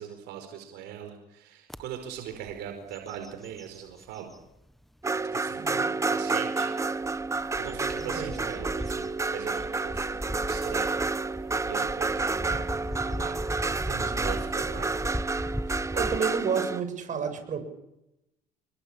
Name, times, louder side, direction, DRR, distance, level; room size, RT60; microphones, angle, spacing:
voice 1, 0.0-4.3 5.3-6.7 7.6-11.0 11.6-12.8 13.0-13.9 14.2-15.2 15.9-16.3, right 9 dB, 90° right, 6 dB, 4.8 m, -41 dB
sound 1, 1.7-1.8 2.3-2.6 2.9-4.4 5.0-5.1 6.8-16.2, equal, ahead, 1.4 m, -37 dB
sound 2, 5.0-16.8, right 3 dB, 15° right, 0.9 m, -30 dB
voice 2, 5.6-5.9 8.0-8.5 13.8-14.2 15.7-17.6, right 6 dB, 45° right, 7 dB, 7.8 m, -32 dB
28.0 x 22.5 x 8.9 m, 0.87 s
cardioid pair, 110°, 17 cm